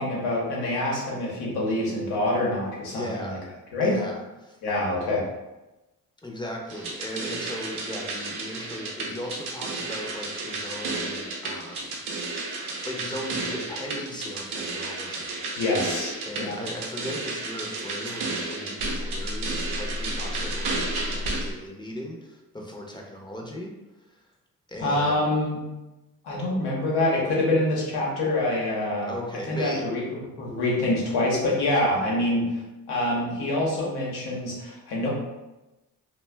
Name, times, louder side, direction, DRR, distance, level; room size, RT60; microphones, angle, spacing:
voice 1, 0.0-3.4 3.7-4.0 4.6-5.2 15.6-16.6 24.8-25.6 26.2-29.1 29.5-35.1, left 1 dB, 90° left, -3 dB, 0.9 m, -26 dB
voice 2, 2.9-3.4 3.8-4.6 6.2-12.0 12.9-15.4 16.3-23.8 24.1-24.2 24.7-25.2 29.1-29.8, left 1 dB, 10° left, 0 dB, 0.5 m, -37 dB
sound 1, 6.7-21.5, right 2 dB, 85° right, 0.6 m, -32 dB
2.4 x 2.2 x 3.2 m, 1.0 s
supercardioid pair, 60°, 37 cm